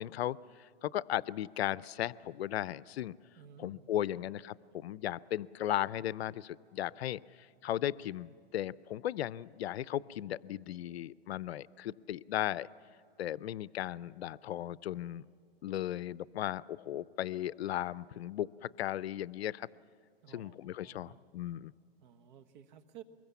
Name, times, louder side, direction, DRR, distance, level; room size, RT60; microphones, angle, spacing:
voice 1, 0.0-3.1 3.6-12.7 13.2-15.2 15.6-19.7 20.3-21.7, left 12 dB, 80° left, 20 dB, 0.6 m, -36 dB
voice 2, 3.3-4.2 20.2-21.2 22.0-23.0, right 9 dB, 45° right, 9 dB, 1.4 m, -55 dB
24.5 x 21.5 x 7.1 m, 2.5 s
hypercardioid pair, 145°, 31 cm